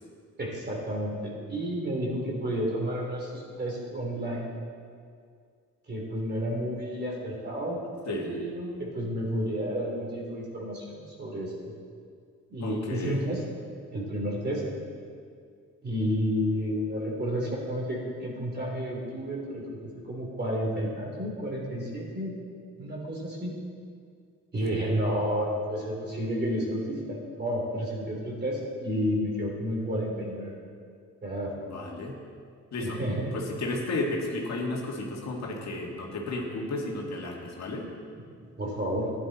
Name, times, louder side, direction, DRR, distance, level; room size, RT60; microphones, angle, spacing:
voice 1, 0.4-4.5 5.9-7.8 8.1-11.5 12.5-13.4 13.9-14.6 15.8-19.6 20.0-22.3 22.8-23.5 24.5-30.5 31.2-31.5 32.8-33.3 38.6-39.1, equal, 35° right, -2 dB, 3.4 m, -31 dB
voice 2, 8.1-8.4 12.6-13.2 31.7-32.1 32.7-33.0 33.3-37.9, left 2 dB, 60° left, -1 dB, 2.0 m, -33 dB
12.5 x 10.5 x 4.2 m, 2.2 s
cardioid pair, 90°, 30 cm